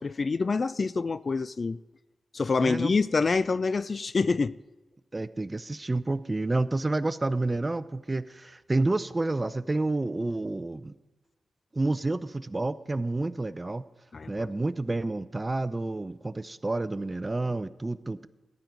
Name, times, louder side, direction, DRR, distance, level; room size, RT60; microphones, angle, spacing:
voice 1, 0.0-1.8 2.3-4.6 14.1-14.5, left 4 dB, 45° left, 0.3 m, -26 dB
voice 2, 2.6-2.9 5.1-10.9 11.7-13.8 14.3-18.3, right 2 dB, 25° right, 0.5 m, -29 dB
14.5 x 11.0 x 3.9 m
cardioid pair, 75°, 0 cm